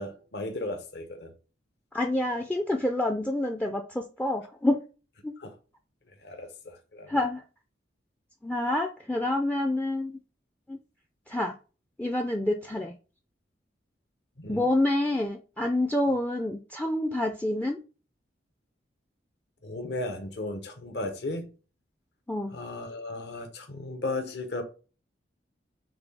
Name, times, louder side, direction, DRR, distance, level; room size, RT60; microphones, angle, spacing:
voice 1, 0.0-1.3 5.4-5.5 6.2-7.2 14.4-14.7 19.6-21.5 22.5-24.6, left 2 dB, 60° left, 0.9 m, -35 dB
voice 2, 1.9-4.8 5.2-5.3 7.1-7.4 8.4-10.2 10.7-10.8 11.3-11.5 12.0-12.9 14.5-17.8 22.3-22.5, left 1 dB, 10° left, 0.3 m, -27 dB
6.0 x 2.3 x 3.3 m
head